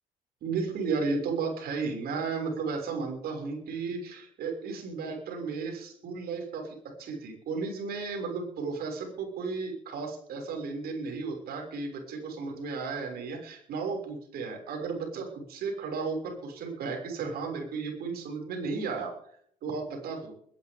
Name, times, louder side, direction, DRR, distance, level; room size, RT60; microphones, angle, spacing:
voice 1, 0.4-19.1 19.6-20.3, right 4 dB, 60° right, 2 dB, 6.6 m, -34 dB
22.0 x 12.0 x 3.8 m, 0.62 s
hypercardioid pair, 55°, 18 cm